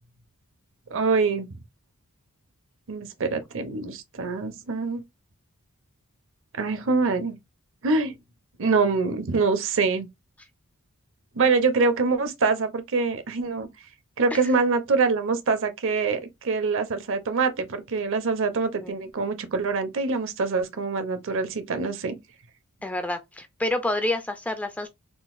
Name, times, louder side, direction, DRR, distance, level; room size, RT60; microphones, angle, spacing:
voice 1, 0.9-1.5 2.9-5.0 6.6-7.4 7.8-8.1 8.6-10.1 11.4-13.7 14.2-22.2, right 4 dB, 60° right, 0.6 m, -25 dB
voice 2, 22.8-24.9, left 1 dB, 5° left, 0.3 m, -28 dB
3.8 x 2.4 x 2.5 m
head